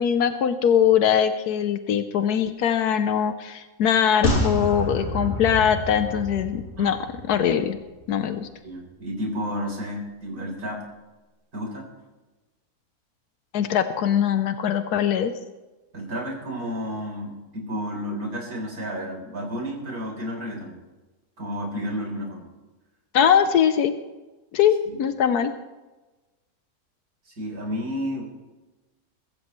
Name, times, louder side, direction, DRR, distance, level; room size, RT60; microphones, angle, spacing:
voice 1, 0.0-7.0 7.3-7.8 8.1-8.5 13.5-15.3 23.1-23.9 24.5-25.5, left 8 dB, 90° left, 9 dB, 1.3 m, -21 dB
sound 1, 4.2-7.7 8.0-8.1, left 1 dB, 45° left, 3.7 m, -28 dB
voice 2, 8.6-10.9 11.5-11.8 15.9-20.8 21.4-22.5 24.9-25.0 27.3-28.3, equal, 70° right, -1 dB, 4.4 m, -31 dB
23.0 x 13.5 x 3.2 m, 1.2 s
omnidirectional pair, 1.6 m